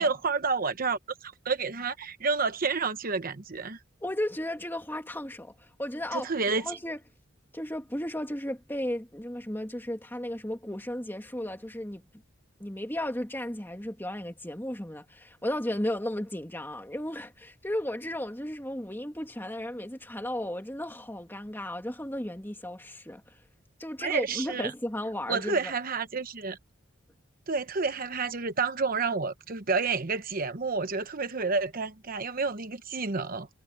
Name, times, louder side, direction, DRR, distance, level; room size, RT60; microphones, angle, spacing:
voice 1, 0.0-3.8 6.1-6.8 24.0-24.7 25.3-26.6 27.5-33.5, right 4 dB, 45° right, 1.0 m, -30 dB
voice 2, 4.0-6.3 6.6-7.0 7.5-12.0 12.6-23.4 23.8-25.7, left 1 dB, 10° left, 2.6 m, -34 dB
head